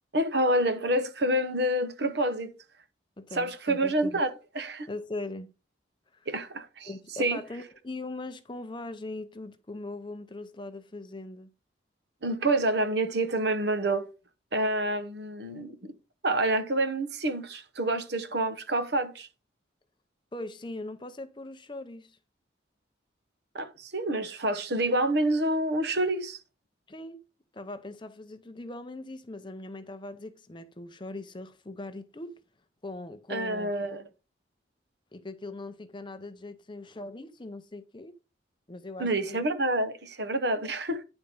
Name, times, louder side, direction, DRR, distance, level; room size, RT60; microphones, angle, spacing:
voice 1, 0.1-2.5 3.3-4.9 6.3-6.9 7.2-7.4 12.2-14.1 14.5-15.9 16.2-19.3 23.5-26.4 33.3-34.0 39.0-41.0, right 1 dB, 60° right, 1.0 m, -28 dB
voice 2, 3.2-4.2 4.9-5.5 6.1-6.3 6.8-11.5 20.3-22.2 26.9-27.2 27.5-32.4 32.8-33.7 35.1-38.1 38.7-39.4, left 2 dB, 25° left, 0.7 m, -40 dB
10.0 x 4.4 x 5.4 m
head